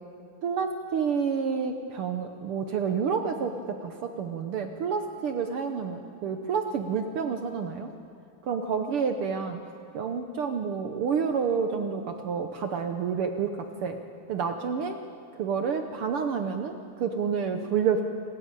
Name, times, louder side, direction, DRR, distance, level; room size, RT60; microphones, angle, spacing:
voice 1, 0.4-7.9 8.4-9.6 9.9-14.0 14.3-15.0 15.4-18.0, right 6 dB, 70° right, 6 dB, 1.3 m, -29 dB
27.0 x 13.5 x 9.0 m, 2.5 s
omnidirectional pair, 3.5 m